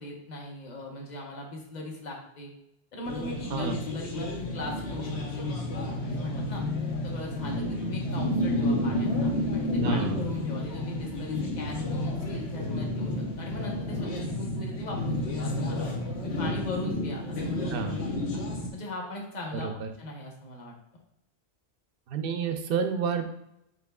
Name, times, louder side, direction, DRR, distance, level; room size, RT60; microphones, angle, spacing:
voice 1, 0.0-2.5 2.9-6.6 7.0-17.8 18.7-19.7 20.0-20.7, left 2 dB, 45° left, -1 dB, 1.0 m, -39 dB
sound 1, 3.1-18.7, left 1 dB, 90° left, 1.2 m, -30 dB
voice 2, 3.5-3.8 9.8-10.3 17.7-18.0 19.5-19.9 22.1-23.2, right 5 dB, 65° right, 7 dB, 0.7 m, -30 dB
7.6 x 2.9 x 2.2 m, 0.79 s
omnidirectional pair, 1.1 m